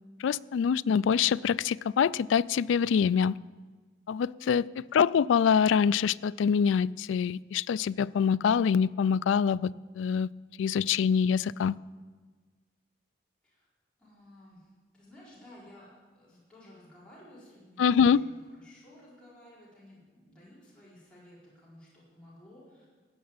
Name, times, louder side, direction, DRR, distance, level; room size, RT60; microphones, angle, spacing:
voice 1, 0.2-3.3 4.1-10.3 10.6-11.7 17.8-18.2, left 7 dB, 80° left, 18 dB, 0.3 m, -25 dB
voice 2, 4.7-5.2 13.4-13.7 14.0-15.9 16.1-22.8, left 1 dB, 5° left, -10 dB, 4.5 m, -54 dB
14.5 x 7.3 x 8.8 m, 1.4 s
head